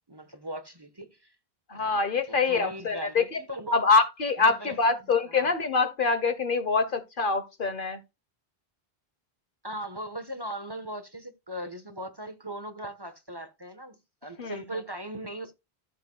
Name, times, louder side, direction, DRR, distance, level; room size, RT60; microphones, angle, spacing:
voice 1, 0.1-1.3 1.7-2.0 2.3-3.8 4.4-5.0 5.3-5.5 9.6-15.5, right 1 dB, 25° right, 1.2 m, -39 dB
voice 2, 1.7-3.4 3.7-8.0 14.4-14.6, left 4 dB, 55° left, 1.2 m, -25 dB
13.5 x 7.4 x 2.3 m
omnidirectional pair, 1.1 m